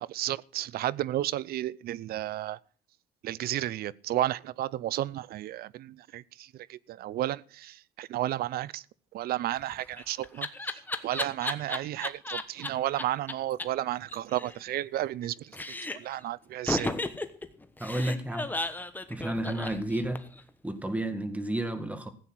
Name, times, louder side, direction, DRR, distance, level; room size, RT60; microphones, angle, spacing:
voice 1, 0.0-2.6 3.2-8.9 9.1-17.0, right 14 dB, 65° right, 0.5 m, -33 dB
Laughter, 9.6-12.7 13.0-13.1 13.3-13.4 13.6-13.7 13.9-15.3 15.5-16.2 16.7-20.4, left 2 dB, 10° left, 1.1 m, -34 dB
voice 2, 17.8-18.5 19.1-20.2 20.6-22.1, right 1 dB, 10° right, 1.9 m, -31 dB
15.5 x 9.0 x 6.1 m
cardioid pair, 110°, 17 cm